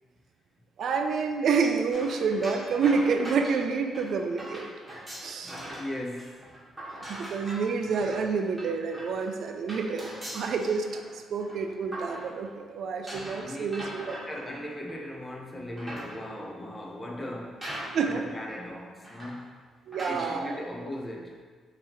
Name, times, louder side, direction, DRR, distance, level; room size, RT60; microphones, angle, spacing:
voice 1, 0.8-4.7 5.2-5.6 7.1-10.9 11.3-14.2 17.9-18.2 19.9-20.6, right 5 dB, 65° right, 5 dB, 0.3 m, -28 dB
sound 1, 1.9-5.9 6.2-12.6 13.1-15.1 15.6-16.5 17.2-17.3 17.6-18.2 18.5-18.6 19.0-19.5 19.9-20.4, right 1 dB, 10° right, 1.3 m, -41 dB
voice 2, 5.4-6.5 13.2-13.7 14.2-17.7 18.0-19.6 19.9-21.4, left 1 dB, 20° left, -1 dB, 0.6 m, -38 dB
4.7 x 2.9 x 2.9 m, 1.5 s
cardioid pair, 90°, 0 cm